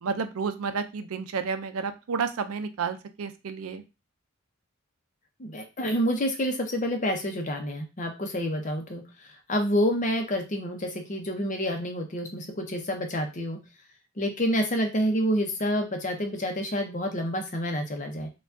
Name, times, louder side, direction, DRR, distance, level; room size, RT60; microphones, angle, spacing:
voice 1, 0.0-3.8, right 5 dB, 80° right, 9 dB, 0.4 m, -31 dB
voice 2, 5.4-13.6 14.2-18.3, equal, 35° left, 4 dB, 0.7 m, -28 dB
4.5 x 2.3 x 2.6 m, 0.28 s
head